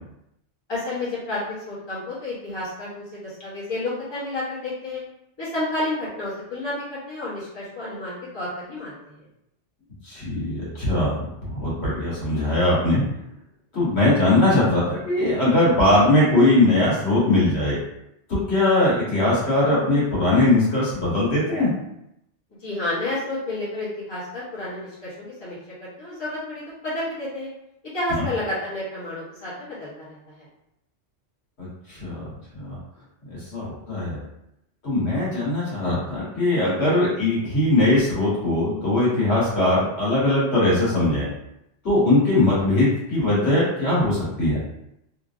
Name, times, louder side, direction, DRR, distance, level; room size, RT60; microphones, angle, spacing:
voice 1, 0.7-5.0 5.4-9.3 22.6-27.5 27.9-30.5, left 2 dB, 25° left, -10 dB, 1.1 m, -30 dB
voice 2, 10.0-11.1 11.4-13.0 13.7-17.8 18.3-21.7 31.6-32.3 32.5-32.8 33.3-34.2 34.8-41.3 41.8-44.6, left 2 dB, 60° left, -8 dB, 1.4 m, -20 dB
3.0 x 2.5 x 2.5 m, 0.82 s
omnidirectional pair, 1.2 m